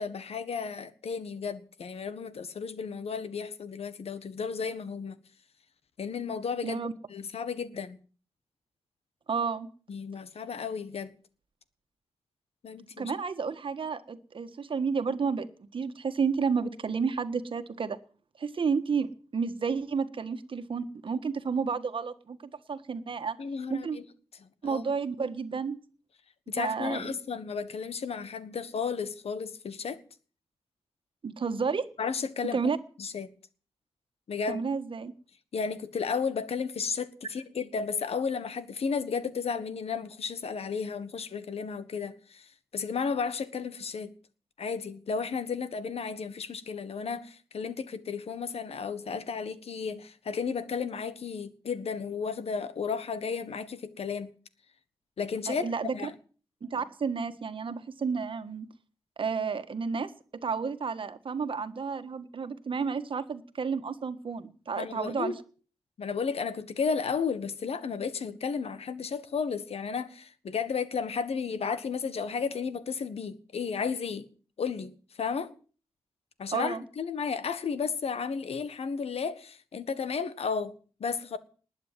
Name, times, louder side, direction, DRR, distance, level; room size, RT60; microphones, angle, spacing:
voice 1, 0.0-5.2 6.0-6.8 7.1-8.0 9.9-11.1 12.6-13.1 23.4-24.0 24.4-24.8 26.5-30.0 32.0-32.6 33.0-33.3 34.3-34.6 35.5-44.1 44.6-54.3 55.2-56.1 64.8-65.3 66.0-74.3 74.6-75.5 76.4-80.7 81.0-81.4, left 5 dB, 80° left, 1.4 m, -33 dB
voice 2, 9.3-9.7 13.0-18.0 18.4-23.4 23.7-24.0 24.6-25.8 26.6-27.1 31.2-31.9 32.5-32.8 34.5-35.1 55.5-55.9 56.6-58.7 59.2-60.1 60.4-65.3 76.5-76.8, right 5 dB, 55° right, 1.6 m, -31 dB
20.0 x 8.8 x 7.5 m
wide cardioid pair, 115°, 10 cm